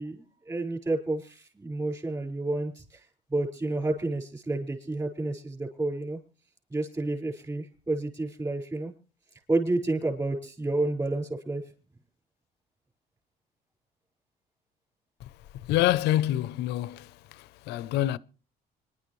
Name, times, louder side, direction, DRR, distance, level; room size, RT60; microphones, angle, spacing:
voice 1, 0.0-6.2 6.7-8.9 9.5-11.6, right 2 dB, 20° right, 5.2 m, -30 dB
voice 2, 15.7-18.2, left 14 dB, 85° left, 0.7 m, -27 dB
25.5 x 11.5 x 3.2 m
cardioid pair, 110°, 17 cm